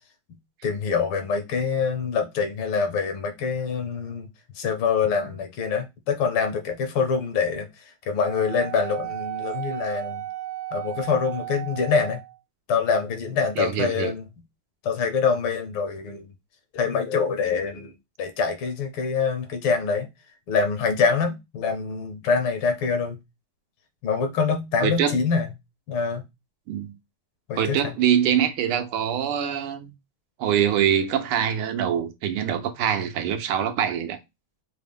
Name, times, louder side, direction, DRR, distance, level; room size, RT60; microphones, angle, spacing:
voice 1, 0.6-4.3 4.5-10.2 10.7-12.2 12.7-14.2 14.8-16.3 16.7-20.1 20.5-23.2 24.0-25.5 25.9-26.2 27.5-27.9, left 5 dB, 75° left, 1.7 m, -25 dB
Wind instrument woodwind instrument, 8.2-12.4, right 15 dB, 65° right, 1.1 m, -34 dB
voice 2, 13.6-14.1 24.8-25.2 26.7-26.9 27.6-29.9 30.4-34.2, right 9 dB, 85° right, 1.5 m, -24 dB
5.3 x 2.2 x 3.4 m
omnidirectional pair, 2.4 m